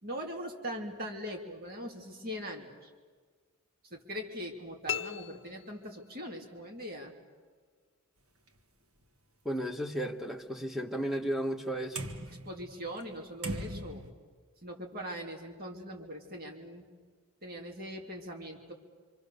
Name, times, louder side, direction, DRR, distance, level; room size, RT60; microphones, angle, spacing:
voice 1, 0.0-2.9 3.8-7.1 12.2-14.0 14.6-16.8 17.4-18.7, equal, 45° right, 2.9 m, -41 dB
sound 1, 4.9-6.4, left 10 dB, 55° left, 0.7 m, -39 dB
sound 2, 8.5-8.6 9.0-9.1 12.0-13.2 13.4-14.1, right 1 dB, 70° right, 1.8 m, -39 dB
voice 2, 9.4-12.0, equal, ahead, 1.4 m, -34 dB
26.5 x 26.0 x 6.8 m
head